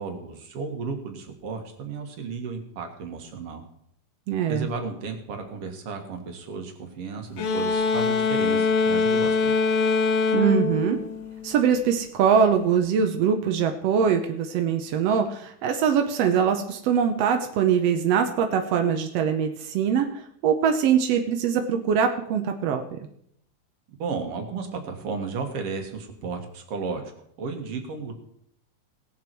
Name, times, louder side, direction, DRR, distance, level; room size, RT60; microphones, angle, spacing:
voice 1, 0.0-3.6 4.5-9.5 24.0-27.1 27.4-28.1, right 4 dB, 55° right, 4 dB, 2.1 m, -33 dB
voice 2, 4.3-4.7 10.3-11.0 11.4-23.0, right 7 dB, 75° right, 5 dB, 1.4 m, -23 dB
sound 1, 7.4-11.8, left 4 dB, 65° left, 2.2 m, -23 dB
19.0 x 7.2 x 4.5 m, 0.71 s
omnidirectional pair, 3.8 m